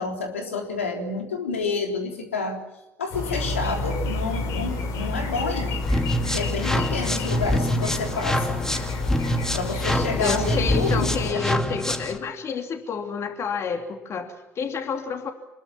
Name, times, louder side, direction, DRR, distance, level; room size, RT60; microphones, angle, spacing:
voice 1, 0.0-2.6 3.0-5.8 6.2-8.6 9.5-11.4, left 4 dB, 85° left, 3 dB, 3.6 m, -29 dB
sound 1, 3.1-11.3, left 3 dB, 60° left, 4.6 m, -30 dB
sound 2, 5.8-12.2, equal, 5° left, 2.3 m, -26 dB
voice 2, 9.8-15.3, left 6 dB, 40° left, 5 dB, 2.9 m, -29 dB
26.0 x 21.0 x 7.3 m, 1.0 s
figure-of-eight pair, 60°, 7 cm